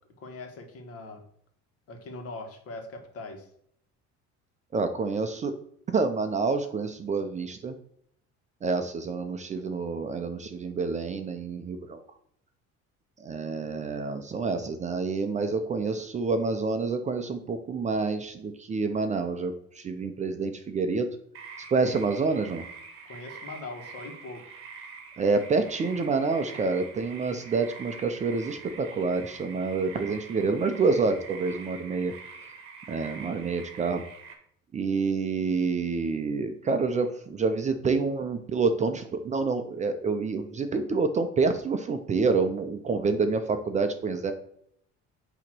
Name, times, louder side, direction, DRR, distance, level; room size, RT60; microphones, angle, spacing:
voice 1, 0.2-1.2 1.9-3.5 23.1-24.5, left 3 dB, 55° left, 4 dB, 1.5 m, -41 dB
voice 2, 4.7-5.5 5.9-7.7 8.6-12.0 13.2-21.1 21.7-22.6 25.2-32.1 32.9-34.0 34.7-44.3, right 4 dB, 25° right, 7 dB, 0.5 m, -28 dB
sound 1, 21.3-34.3, right 5 dB, 45° right, 1.6 m, -45 dB
8.8 x 3.0 x 6.0 m, 0.68 s
cardioid pair, 160°, 29 cm